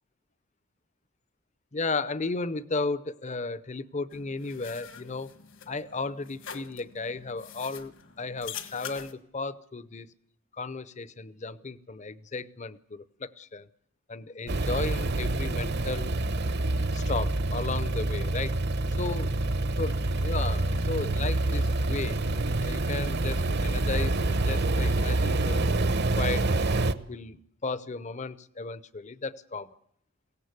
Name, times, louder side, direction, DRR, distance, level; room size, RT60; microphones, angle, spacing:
voice 1, 1.7-5.3 5.7-7.9 8.2-10.1 10.5-13.7 14.1-16.1 16.9-18.6 19.0-19.3 19.8-25.6 26.2-26.5 27.1-29.7, left 3 dB, 35° left, 16 dB, 0.8 m, -34 dB
sound 1, 4.1-9.1, left 8 dB, 60° left, 1.6 m, -44 dB
sound 2, 14.5-26.9, right 2 dB, 50° right, 0.9 m, -27 dB
sound 3, 19.8-25.8, right 1 dB, 85° right, 2.7 m, -47 dB
22.0 x 17.0 x 8.2 m, 0.73 s
head